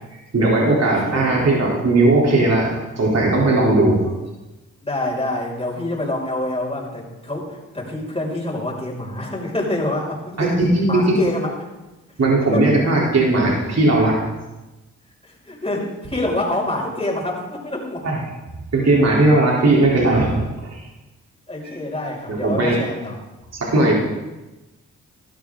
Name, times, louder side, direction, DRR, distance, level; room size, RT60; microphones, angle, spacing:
voice 1, 0.3-4.1 10.4-11.2 12.2-14.2 18.0-18.2 18.7-20.8 22.3-22.8 23.5-23.9, right 2 dB, 50° right, -3 dB, 3.6 m, -17 dB
voice 2, 0.8-1.3 4.8-11.5 12.5-12.6 15.2-18.1 21.5-23.2, left 1 dB, 15° left, -3 dB, 6.0 m, -26 dB
17.0 x 12.5 x 3.8 m, 1.1 s
supercardioid pair, 50°, 33 cm